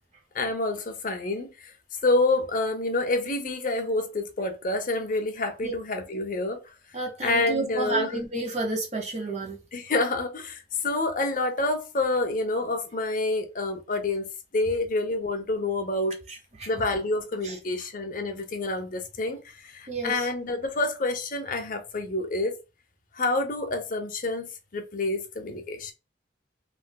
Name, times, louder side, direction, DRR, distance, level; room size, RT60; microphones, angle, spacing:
voice 1, 0.3-1.7 2.0-6.6 7.2-8.1 9.7-16.2 16.7-22.5 23.1-25.9, left 2 dB, 50° left, 0.7 m, -28 dB
voice 2, 6.9-9.6 16.3-16.7 17.4-17.5 19.9-20.3, right 3 dB, 40° right, 1.0 m, -31 dB
3.5 x 2.6 x 2.2 m
head